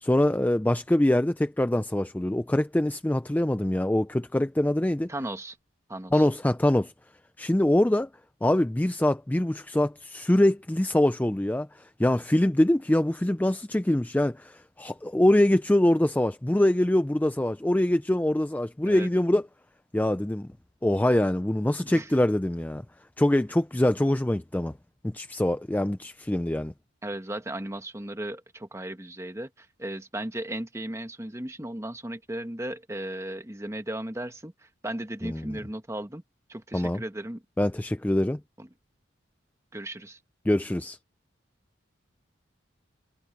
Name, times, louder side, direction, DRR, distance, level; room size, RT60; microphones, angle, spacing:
voice 1, 0.0-5.1 6.1-6.9 7.4-8.1 8.4-19.5 19.9-20.5 20.8-22.8 23.2-24.7 25.0-26.7 35.2-35.6 36.7-37.0 37.6-38.4 40.4-41.0, left 1 dB, 10° left, 0.4 m, -24 dB
voice 2, 5.1-5.6 5.9-6.2 18.8-19.1 21.8-22.1 27.0-36.2 36.5-37.4 38.6-38.7 39.7-40.2, right 1 dB, 15° right, 1.2 m, -36 dB
head